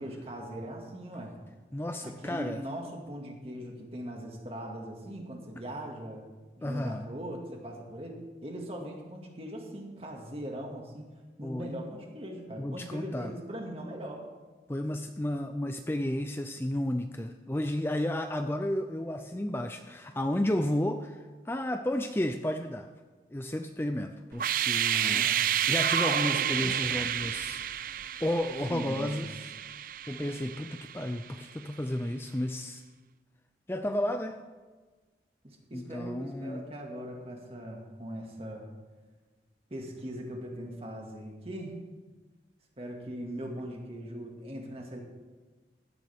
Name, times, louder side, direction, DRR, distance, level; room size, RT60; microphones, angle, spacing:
voice 1, 0.0-1.4 2.0-6.2 6.6-11.1 11.4-14.3 24.9-25.6 28.7-29.2 35.4-38.7 39.7-41.8 42.8-45.0, equal, 35° right, 0 dB, 2.1 m, -40 dB
voice 2, 1.7-2.6 6.6-7.0 11.4-11.7 12.6-13.3 14.7-22.9 23.3-25.3 25.7-27.6 28.2-29.3 30.1-32.8 33.7-34.4 35.7-36.6, left 1 dB, 15° left, 6 dB, 0.5 m, -32 dB
sound 1, 24.3-31.2, right 9 dB, 50° right, 0.4 m, -30 dB
16.0 x 12.0 x 3.6 m, 1.4 s
head